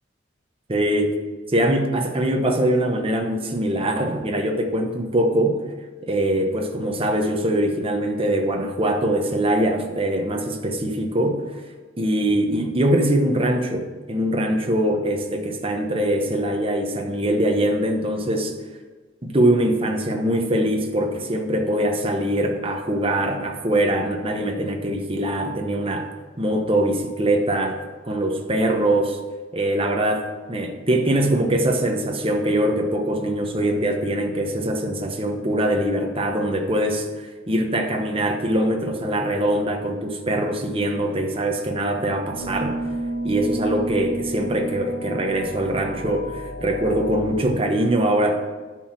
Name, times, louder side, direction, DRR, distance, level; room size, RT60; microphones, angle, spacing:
voice 1, 0.7-1.1 1.5-5.6 6.1-11.6 12.0-18.5 19.2-26.1 26.4-27.8 28.0-29.2 29.5-42.8 43.2-48.5, right 1 dB, 30° right, 3 dB, 1.0 m, -22 dB
sound 1, 42.3-47.3, right 1 dB, 40° left, 2.7 m, -31 dB
11.0 x 4.7 x 6.1 m, 1.3 s
head